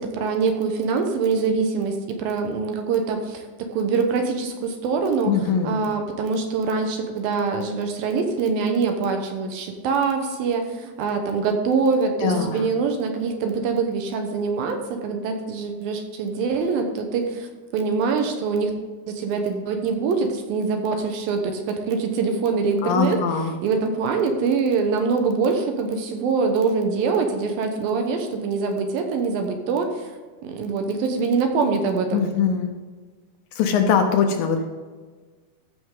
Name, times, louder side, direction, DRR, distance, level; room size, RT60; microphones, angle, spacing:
voice 1, 0.0-3.4 3.7-18.7 19.1-30.1 30.4-32.3, right 4 dB, 75° right, 4 dB, 2.6 m, -24 dB
voice 2, 5.3-5.8 12.2-12.7 22.8-23.5 32.1-32.7 33.6-34.7, left 6 dB, 75° left, 5 dB, 2.3 m, -21 dB
14.0 x 6.3 x 3.7 m, 1.4 s
omnidirectional pair, 4.5 m